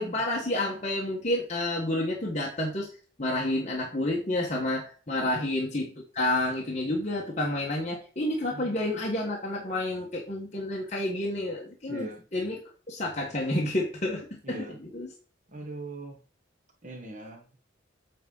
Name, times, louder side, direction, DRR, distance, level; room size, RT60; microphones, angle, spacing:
voice 1, 0.0-2.9 3.2-12.0 12.3-12.5 12.9-14.6 14.9-15.1, left 1 dB, 35° left, -2 dB, 1.4 m, -29 dB
voice 2, 11.9-12.3 14.4-14.8 15.5-16.2 16.8-17.5, right 2 dB, 40° right, 2 dB, 1.5 m, -40 dB
8.4 x 3.7 x 5.5 m, 0.38 s
head